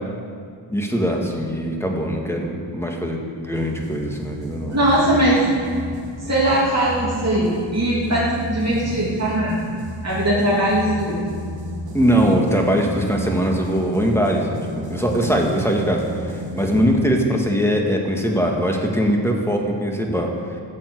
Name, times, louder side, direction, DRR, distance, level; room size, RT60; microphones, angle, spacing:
voice 1, 0.7-4.8 11.9-20.3, equal, 5° left, 1 dB, 2.0 m, -21 dB
sound 1, 3.5-17.4, equal, 50° right, 2.1 m, -32 dB
voice 2, 4.7-5.5 6.2-9.7 10.0-11.2, right 1 dB, 35° right, -7 dB, 2.9 m, -20 dB
14.5 x 7.7 x 7.9 m, 2.2 s
wide cardioid pair, 65°, 46 cm